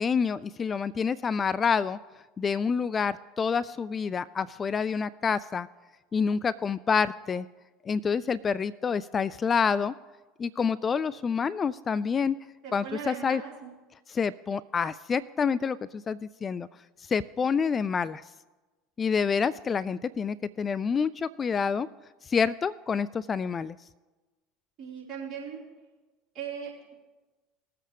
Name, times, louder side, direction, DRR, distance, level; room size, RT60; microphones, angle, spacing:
voice 1, 0.0-2.0 2.4-5.7 6.1-7.5 7.8-9.9 10.4-12.4 12.7-13.4 14.1-16.7 17.1-18.2 19.0-21.9 22.3-23.8, left 6 dB, 30° left, 17 dB, 0.3 m, -27 dB
voice 2, 12.6-13.7 24.8-25.6 26.3-26.9, right 7 dB, 45° right, -5 dB, 4.6 m, -39 dB
20.0 x 7.6 x 3.4 m, 1.2 s
figure-of-eight pair, 70°, 0 cm